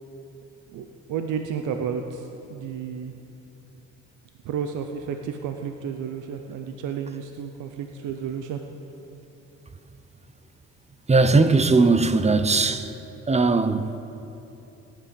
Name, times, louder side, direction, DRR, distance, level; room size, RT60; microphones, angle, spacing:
voice 1, 0.7-3.2 4.4-8.6, right 7 dB, 85° right, 0.8 m, -32 dB
voice 2, 11.1-13.0 13.3-14.0, right 3 dB, 20° right, 0.7 m, -19 dB
17.0 x 10.5 x 5.3 m
cardioid pair, 90°, 30 cm